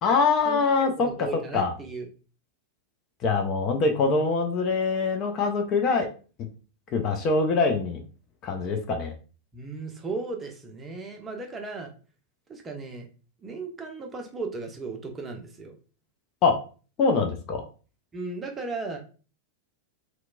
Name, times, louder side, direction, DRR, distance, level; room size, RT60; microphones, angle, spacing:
voice 1, 0.0-1.3 1.5-1.7 3.2-6.1 6.9-8.0 8.4-9.1 16.4-16.6 17.0-17.6, left 4 dB, 35° left, 5 dB, 0.4 m, -24 dB
voice 2, 1.0-2.1 9.5-11.9 12.5-13.1 13.4-15.7 18.1-19.0, right 3 dB, 20° right, 2 dB, 0.5 m, -36 dB
2.8 x 2.1 x 2.4 m, 0.36 s
figure-of-eight pair, 90°, 0 cm